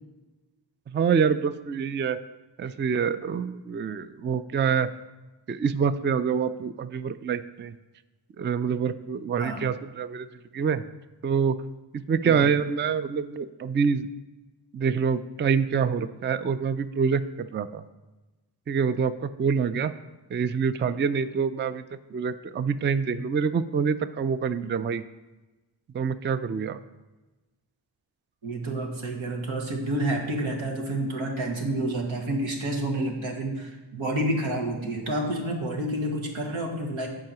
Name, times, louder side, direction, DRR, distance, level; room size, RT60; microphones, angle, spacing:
voice 1, 0.9-2.2 2.6-4.9 5.5-7.7 8.4-10.3 10.5-10.8 11.2-11.6 11.9-14.1 14.7-17.8 18.7-19.9 20.3-21.8 22.1-25.0 25.9-26.8, right 6 dB, 25° right, 13 dB, 0.3 m, -26 dB
voice 2, 9.4-9.7 12.2-12.5 28.4-37.1, right 1 dB, 90° right, 1 dB, 1.5 m, -29 dB
7.7 x 4.8 x 5.8 m, 1.1 s
cardioid pair, 55°, 46 cm